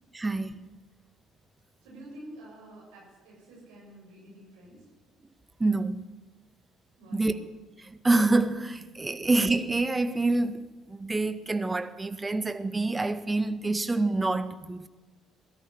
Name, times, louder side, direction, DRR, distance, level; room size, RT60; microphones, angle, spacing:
voice 1, 0.1-0.7 5.6-6.1 7.1-7.4 7.8-14.9, right 2 dB, 20° right, 1.6 m, -27 dB
voice 2, 1.8-4.8 7.0-7.4 9.1-9.3, right 1 dB, 70° right, 7.8 m, -48 dB
21.0 x 13.5 x 9.8 m
figure-of-eight pair, 50°, 0 cm